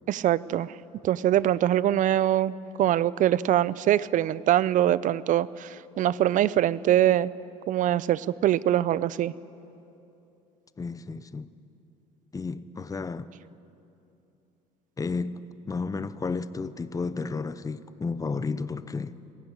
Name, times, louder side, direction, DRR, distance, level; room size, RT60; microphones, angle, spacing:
voice 1, 0.1-0.7 1.0-2.5 2.8-7.3 7.7-9.3, right 12 dB, 55° right, 0.6 m, -23 dB
voice 2, 10.8-11.5 12.3-13.3 15.0-19.1, left 4 dB, 20° left, 0.8 m, -32 dB
21.5 x 15.5 x 10.0 m
supercardioid pair, 75°, 16 cm